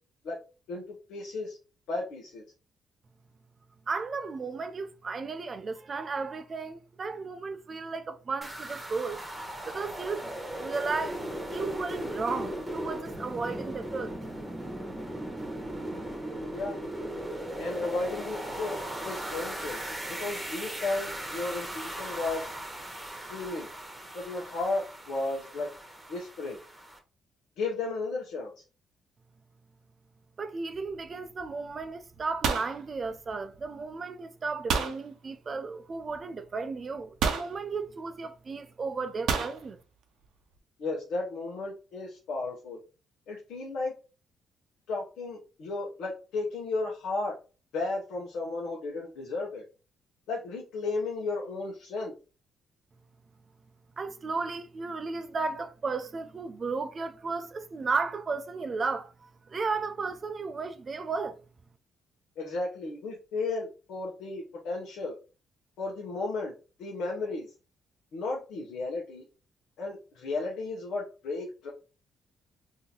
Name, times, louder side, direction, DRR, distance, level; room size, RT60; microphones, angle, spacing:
voice 1, 1.1-1.6 1.9-2.4 16.2-16.7 17.6-18.8 19.0-19.8 20.1-22.5 23.1-23.7 24.1-25.7 26.1-26.6 27.6-28.5 40.8-42.8 43.3-43.9 44.9-47.3 47.7-49.6 50.3-52.1 62.4-65.1 65.8-66.5 66.8-67.5 68.1-69.2 69.8-71.7, left 3 dB, 85° left, 0.8 m, -34 dB
voice 2, 3.9-9.2 9.6-10.3 10.6-11.2 11.5-14.1 30.4-39.8 54.0-61.4, right 4 dB, 40° right, 0.4 m, -34 dB
sound 1, 8.4-27.0, right 1 dB, 10° right, 1.1 m, -38 dB
sound 2, 30.8-31.1 31.4-31.8 32.1-33.7 34.7-35.0 36.1-36.2 37.2-37.6 39.3-39.6, right 6 dB, 80° right, 0.6 m, -29 dB
3.7 x 2.7 x 2.8 m
cardioid pair, 90°, 0 cm